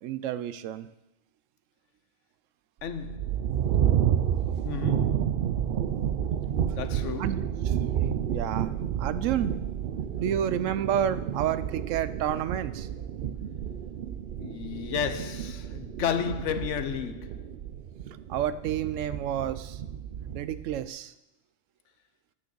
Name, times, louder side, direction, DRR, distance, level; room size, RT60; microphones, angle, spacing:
voice 1, 0.0-0.9 7.2-7.7 8.3-8.7 9.0-9.5 10.1-12.9 18.3-19.8 20.3-21.1, right 10 dB, 80° right, 0.9 m, -30 dB
voice 2, 2.8-3.4 4.6-5.3 6.8-7.4 14.4-17.5, left 8 dB, 70° left, 1.0 m, -33 dB
sound 1, 2.8-20.9, right 9 dB, 60° right, 0.6 m, -30 dB
9.1 x 6.4 x 6.9 m
omnidirectional pair, 1.3 m